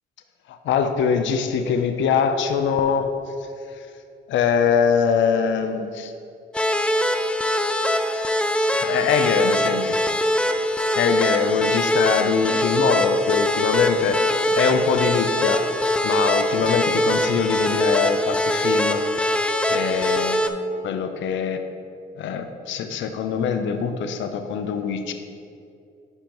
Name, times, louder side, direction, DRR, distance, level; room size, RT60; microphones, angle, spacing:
voice 1, 0.5-3.1 4.3-6.1 8.7-10.0 10.9-15.6 16.0-19.0 19.7-20.6 20.8-21.6 22.2-25.1, left 6 dB, 70° left, 7 dB, 0.6 m, -23 dB
sound 1, 6.5-20.5, left 1 dB, 5° left, 0.3 m, -22 dB
9.7 x 5.3 x 3.0 m, 2.5 s
cardioid pair, 90°, 20 cm